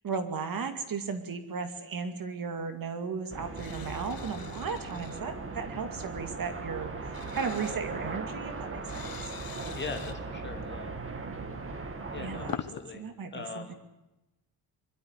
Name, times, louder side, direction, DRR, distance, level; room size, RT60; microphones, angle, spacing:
voice 1, 0.0-9.1 12.2-12.5 12.9-13.7, right 5 dB, 55° right, 7 dB, 2.3 m, -36 dB
sound 1, 3.3-12.6, right 3 dB, 30° right, 2.1 m, -38 dB
sound 2, 3.5-5.2 7.1-7.8 8.9-10.2 11.9-12.8, left 8 dB, 55° left, 1.2 m, -43 dB
voice 2, 9.7-11.0 12.1-13.0 13.3-13.7, left 4 dB, 25° left, 5 dB, 2.5 m, -40 dB
23.5 x 13.0 x 10.0 m, 0.98 s
wide cardioid pair, 175°, 41 cm